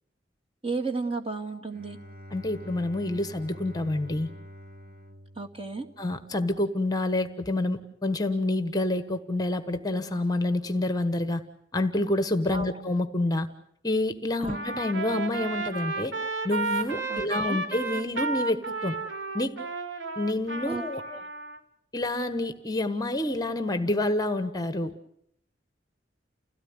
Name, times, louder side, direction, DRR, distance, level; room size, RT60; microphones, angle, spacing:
voice 1, 0.6-2.0 5.4-5.9 12.5-12.7 14.4-14.6 17.1-17.6 20.6-21.3, right 3 dB, 30° right, 3 dB, 2.3 m, -33 dB
Bowed string instrument, 1.7-6.4, equal, 50° right, 1.9 m, -46 dB
voice 2, 2.3-4.3 6.0-11.4 11.7-13.5 13.8-16.1 16.4-19.0 19.3-19.5 20.2-21.0 21.9-24.9, left 2 dB, 20° left, 9 dB, 1.2 m, -28 dB
Trumpet, 14.5-21.6, right 3 dB, 85° right, 2.5 m, -32 dB
30.0 x 17.0 x 9.6 m, 0.73 s
head